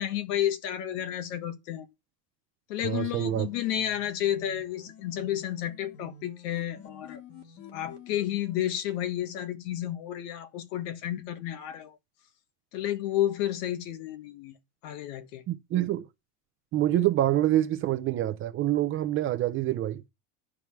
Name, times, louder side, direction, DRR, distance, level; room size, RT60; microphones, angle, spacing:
voice 1, 0.0-1.9 2.7-7.2 7.7-12.0 12.7-14.6 14.8-15.4, left 12 dB, 80° left, 1.7 m, -31 dB
voice 2, 2.8-3.5 15.5-16.1 16.7-20.0, right 13 dB, 30° right, 0.5 m, -26 dB
sound 1, 2.9-8.6, left 6 dB, 55° left, 2.0 m, -49 dB
11.0 x 4.8 x 5.9 m
cardioid pair, 170°, 47 cm